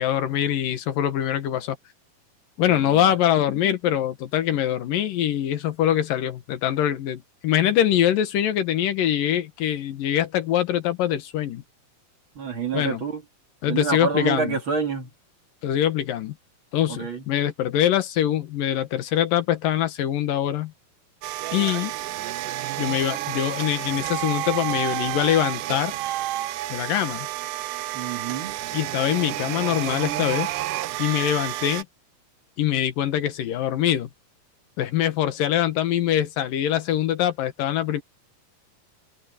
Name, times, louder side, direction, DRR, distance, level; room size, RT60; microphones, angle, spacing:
voice 1, 0.0-1.8 2.6-11.6 12.7-13.0 13.6-14.6 15.6-16.3 16.7-20.7 21.5-21.9 22.8-26.0 26.7-27.3 28.7-30.5 31.0-31.9 32.6-34.1 34.8-38.0, left 11 dB, 80° left, 3.1 m, -23 dB
voice 2, 2.7-3.1 12.4-13.2 13.6-15.1 16.9-17.2 27.9-28.5, right 5 dB, 40° right, 2.8 m, -28 dB
sound 1, 21.2-31.8, right 15 dB, 80° right, 2.2 m, -30 dB
open air
omnidirectional pair, 3.8 m